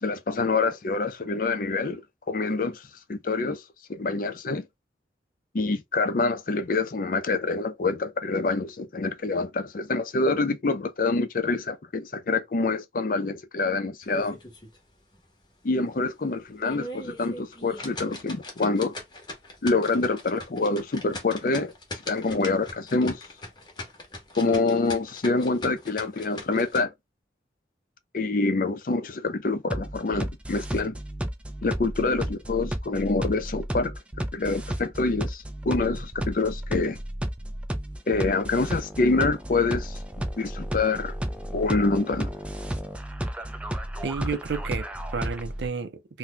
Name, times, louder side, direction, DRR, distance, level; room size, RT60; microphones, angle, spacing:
voice 1, 0.0-2.8 3.1-3.6 3.9-4.6 5.5-14.4 15.6-18.9 19.6-21.7 22.1-23.3 24.4-26.9 28.1-31.0 31.6-37.0 38.1-40.0 40.4-41.1 41.5-42.3, left 3 dB, 50° left, 0.5 m, -26 dB
sound 1, 14.0-14.8 15.1-15.2 15.7-15.8 16.4-26.8, left 2 dB, 25° left, 0.9 m, -40 dB
sound 2, 29.7-45.7, right 1 dB, 5° right, 0.3 m, -33 dB
voice 2, 44.0-46.2, right 5 dB, 75° right, 0.5 m, -32 dB
2.8 x 2.1 x 3.8 m
head